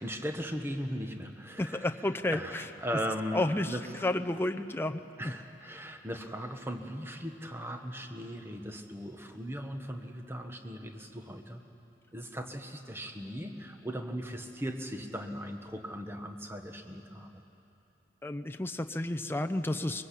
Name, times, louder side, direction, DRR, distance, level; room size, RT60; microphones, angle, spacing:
voice 1, 0.0-1.9 2.3-4.1 5.2-11.6 12.1-17.4, equal, 15° right, 5 dB, 1.3 m, -38 dB
voice 2, 1.6-2.6 3.3-3.7 4.0-5.3 18.2-20.0, left 1 dB, 10° left, 6 dB, 0.7 m, -31 dB
24.0 x 22.0 x 8.5 m, 2.9 s
head